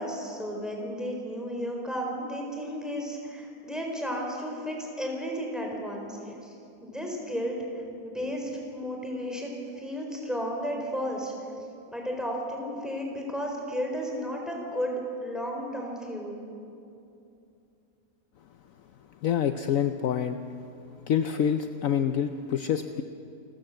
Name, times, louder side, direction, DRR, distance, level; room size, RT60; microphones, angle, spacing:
voice 1, 0.0-6.5 6.8-11.3 11.9-16.4, equal, ahead, 0 dB, 4.2 m, -33 dB
voice 2, 19.2-20.4 21.1-23.0, left 8 dB, 65° left, 9 dB, 1.0 m, -26 dB
28.5 x 14.0 x 7.8 m, 2.7 s
omnidirectional pair, 1.6 m